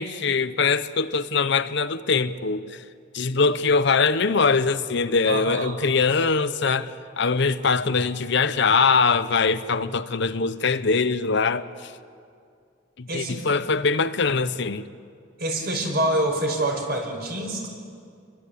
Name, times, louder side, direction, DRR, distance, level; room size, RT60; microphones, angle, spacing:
voice 1, 0.0-2.8 3.1-11.9 13.0-14.9, left 4 dB, 65° left, 0.9 m, -22 dB
voice 2, 5.3-5.8 13.1-13.4 15.4-17.7, right 1 dB, 55° right, 5.7 m, -26 dB
29.5 x 23.0 x 8.5 m
head